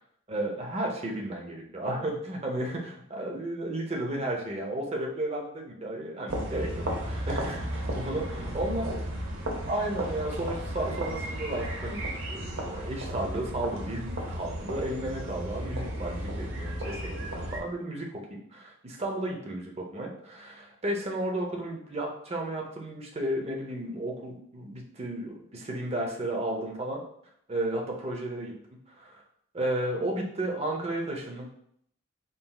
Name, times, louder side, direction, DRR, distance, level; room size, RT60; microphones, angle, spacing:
voice 1, 0.3-8.8 9.7-27.0 27.5-28.5 29.0-29.2 29.5-31.5, right 1 dB, 30° right, 0 dB, 0.7 m, -33 dB
sound 1, 6.3-17.6, right 1 dB, 80° right, 0.9 m, -34 dB
4.1 x 3.9 x 2.3 m, 0.70 s
head